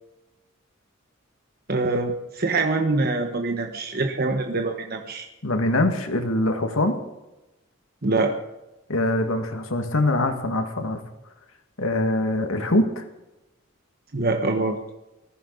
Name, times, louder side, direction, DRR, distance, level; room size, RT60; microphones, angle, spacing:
voice 1, 1.7-5.3 8.0-8.3 14.1-14.8, right 3 dB, 45° right, 3 dB, 1.3 m, -24 dB
voice 2, 5.4-7.0 8.9-11.0 11.8-13.0, left 1 dB, 75° left, 5 dB, 2.0 m, -23 dB
19.5 x 15.0 x 4.1 m, 0.96 s
head